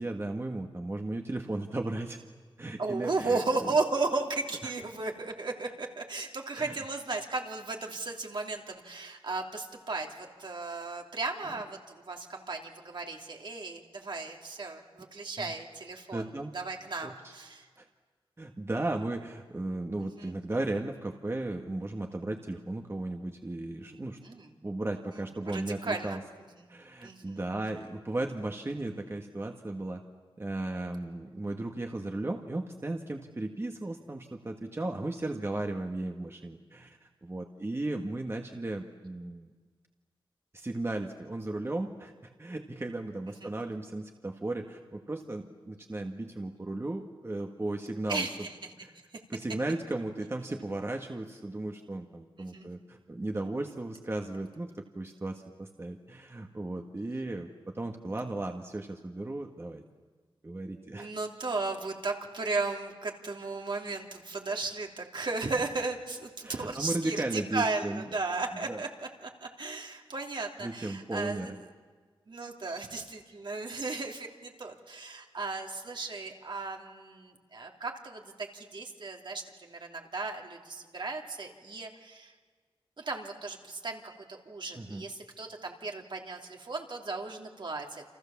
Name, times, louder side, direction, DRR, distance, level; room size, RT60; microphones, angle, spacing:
voice 1, 0.0-2.2 2.6-3.4 4.6-4.7 6.6-6.8 15.4-15.5 16.1-16.5 17.0-17.3 17.8-17.9 18.4-24.2 24.6-26.2 26.7-30.0 30.4-39.5 40.5-48.3 49.3-59.8 60.4-61.1 66.4-68.0 68.7-68.8 70.6-71.6 84.7-85.1, right 2 dB, 25° right, 3 dB, 1.7 m, -35 dB
voice 2, 2.8-17.7 20.0-20.3 23.9-24.5 25.1-26.7 27.0-27.5 27.8-27.9 43.3-43.5 48.1-48.9 49.3-49.6 52.4-52.7 60.9-71.7 72.3-82.3 83.0-88.0, right 3 dB, 60° right, 1 dB, 3.2 m, -35 dB
29.5 x 27.0 x 7.3 m, 1.5 s
wide cardioid pair, 90°, 9 cm